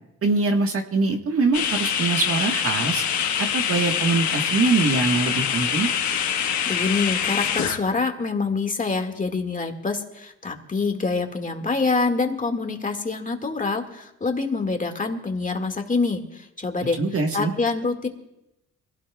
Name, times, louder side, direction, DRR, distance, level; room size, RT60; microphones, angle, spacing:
voice 1, 0.2-3.0 3.4-5.9 17.0-17.5, right 3 dB, 50° right, 3 dB, 1.4 m, -23 dB
sound 1, 1.5-7.8, left 8 dB, 70° left, 1.3 m, -24 dB
voice 2, 6.7-17.0 17.3-18.1, left 4 dB, 25° left, 4 dB, 1.9 m, -26 dB
23.5 x 17.0 x 2.3 m, 0.87 s
cardioid pair, 90°, 30 cm